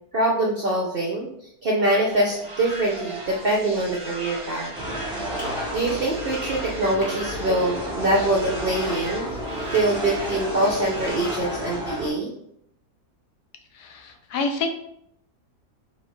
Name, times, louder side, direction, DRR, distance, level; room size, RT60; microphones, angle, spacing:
voice 1, 0.1-4.7 5.7-9.3 9.7-12.3, right 1 dB, 60° right, -2 dB, 0.6 m, -24 dB
sound 1, 1.8-11.4, right 2 dB, 25° right, 0.8 m, -37 dB
sound 2, 4.7-12.1, equal, 5° right, 0.4 m, -32 dB
Gunshot gunfire, 5.4-11.4, equal, 25° left, 1.7 m, -40 dB
voice 2, 13.7-14.7, left 3 dB, 80° left, 5 dB, 1.2 m, -28 dB
4.2 x 3.2 x 3.0 m, 0.71 s
omnidirectional pair, 1.7 m